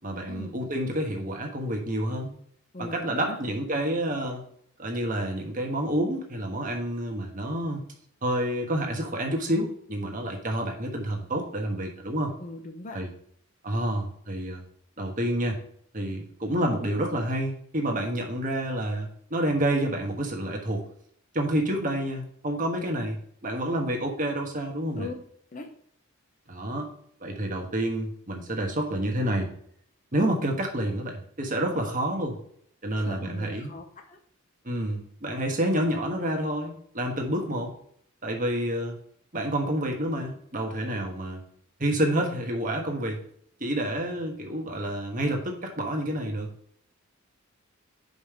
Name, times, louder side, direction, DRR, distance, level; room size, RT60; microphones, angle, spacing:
voice 1, 0.0-2.4 2.8-4.4 4.8-7.8 8.2-12.3 12.9-13.1 13.6-14.6 15.0-15.6 15.9-20.9 21.3-25.1 26.5-26.9 27.2-29.5 30.1-32.4 32.8-33.7 34.6-37.7 38.2-39.0 39.3-41.4 41.8-43.2 43.6-46.5, right 1 dB, 40° right, 2 dB, 1.4 m, -29 dB
voice 2, 2.7-3.4 12.4-13.0 25.0-25.1 25.5-25.7 33.0-34.2, left 2 dB, 35° left, 4 dB, 0.8 m, -40 dB
5.5 x 5.3 x 6.4 m, 0.66 s
head